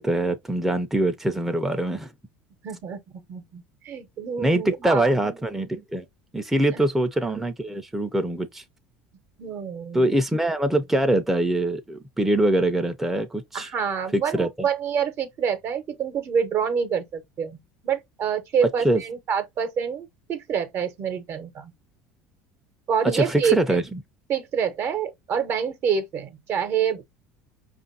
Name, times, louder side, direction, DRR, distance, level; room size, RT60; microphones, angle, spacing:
voice 1, 0.0-2.1 4.4-6.0 6.3-8.6 9.9-13.7 14.1-14.5 18.8-19.0 23.1-24.0, right 1 dB, 5° right, 0.5 m, -23 dB
voice 2, 2.6-5.1 6.7-6.8 9.4-10.1 13.5-17.6 17.8-21.7 22.9-23.6 24.3-27.0, right 7 dB, 50° right, 0.9 m, -27 dB
5.0 x 2.5 x 2.6 m
hypercardioid pair, 80°, 6 cm